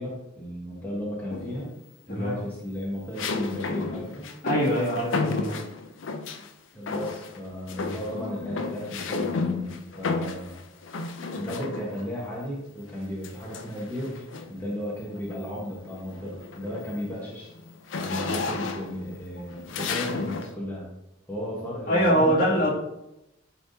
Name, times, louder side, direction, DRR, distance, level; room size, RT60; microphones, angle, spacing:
voice 1, 0.0-1.7 2.1-4.3 6.7-10.6 11.3-17.5 18.0-20.9 21.3-22.7, equal, 10° left, -7 dB, 1.2 m, -34 dB
sound 1, 1.3-1.8 3.2-6.5 6.9-7.4 7.7-12.1 13.2-14.6 15.2-15.4 15.8-20.5, left 4 dB, 75° left, 0.5 m, -32 dB
voice 2, 4.4-5.6 21.9-22.7, equal, 45° left, -6 dB, 2.2 m, -23 dB
9.9 x 3.5 x 2.7 m, 0.88 s
head